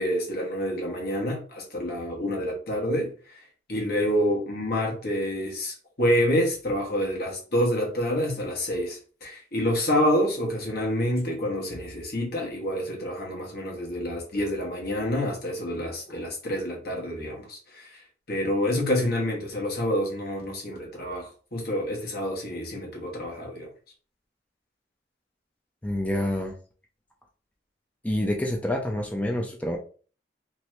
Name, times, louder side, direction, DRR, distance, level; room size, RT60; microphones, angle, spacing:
voice 1, 0.0-3.4 3.7-18.0 18.3-23.7, equal, 55° left, 1.2 m, -28 dB
voice 2, 25.8-26.6 28.0-29.8, left 1 dB, 10° left, 0.4 m, -27 dB
2.9 x 2.6 x 3.1 m
head